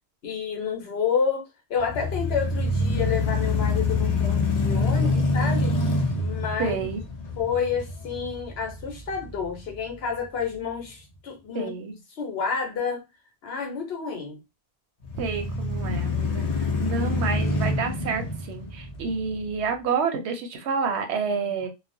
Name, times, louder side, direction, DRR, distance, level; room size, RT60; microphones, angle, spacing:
voice 1, 0.2-5.7 6.1-6.7 7.4-11.7 12.2-13.0 13.4-14.4, left 6 dB, 70° left, 1.0 m, -29 dB
sound 1, 1.8-9.9 10.4-10.5 15.0-19.5, left 3 dB, 45° left, 0.6 m, -26 dB
voice 2, 6.6-7.0 11.5-12.0 15.2-21.7, right 5 dB, 85° right, 0.9 m, -29 dB
2.3 x 2.0 x 2.5 m
omnidirectional pair, 1.1 m